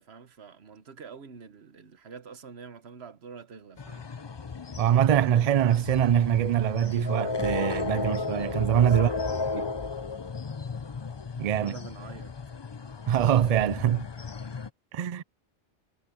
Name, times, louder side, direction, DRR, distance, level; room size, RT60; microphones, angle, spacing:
voice 1, 0.0-4.1 8.6-9.6 11.5-12.3, right 5 dB, 70° right, 1.3 m, -46 dB
sound 1, 3.8-14.7, left 4 dB, 30° left, 0.5 m, -34 dB
voice 2, 4.8-9.1 9.5-9.6 11.4-11.8 13.1-14.1 14.9-15.2, right 10 dB, 55° right, 0.4 m, -23 dB
omnidirectional pair, 1.1 m